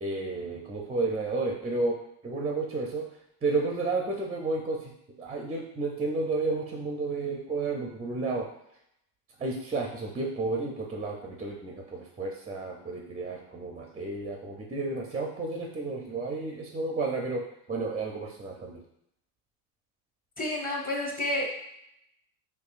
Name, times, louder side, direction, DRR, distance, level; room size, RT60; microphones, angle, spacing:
voice 1, 0.0-2.0 2.2-3.1 3.4-4.9 5.2-8.5 9.4-17.4 17.7-18.8, right 3 dB, 15° right, 0 dB, 0.4 m, -31 dB
voice 2, 20.4-21.5, left 1 dB, 20° left, 0 dB, 0.9 m, -30 dB
4.4 x 2.6 x 2.4 m, 0.77 s
supercardioid pair, 100°, 44 cm